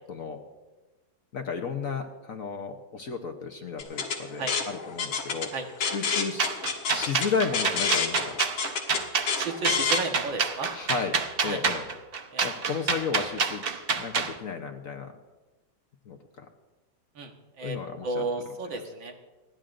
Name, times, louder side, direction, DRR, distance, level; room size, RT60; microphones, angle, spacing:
voice 1, 0.1-0.4 1.3-5.5 5.9-6.6 6.9-8.4 10.7-11.9 12.4-13.6 14.0-15.2 16.1-16.5 17.6-18.6, left 5 dB, 55° left, 4 dB, 1.1 m, -33 dB
sound 1, 3.8-10.0, left 6 dB, 90° left, 2.2 m, -29 dB
sound 2, 6.4-14.3, right 5 dB, 55° right, 0.6 m, -27 dB
voice 2, 9.4-10.7 11.5-11.6 12.3-12.5 17.2-17.3 17.6-17.8 18.0-19.1, right 3 dB, 75° right, 3 dB, 2.1 m, -32 dB
29.0 x 10.5 x 2.5 m, 1.2 s
omnidirectional pair, 2.1 m